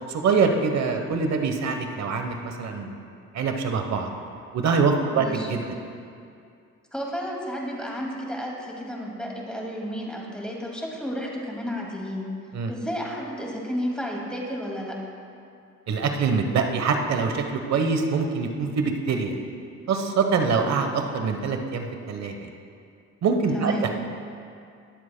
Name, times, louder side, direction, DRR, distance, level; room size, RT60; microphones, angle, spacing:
voice 1, 0.1-3.0 3.3-4.1 4.5-5.6 12.5-12.7 15.9-19.3 19.9-22.5 23.2-23.9, right 5 dB, 60° right, 5 dB, 1.0 m, -24 dB
voice 2, 5.1-5.5 6.9-12.3 12.7-15.0 23.5-23.9, equal, 5° left, -2 dB, 2.2 m, -32 dB
21.0 x 7.5 x 2.2 m, 2.4 s
cardioid pair, 90°, 30 cm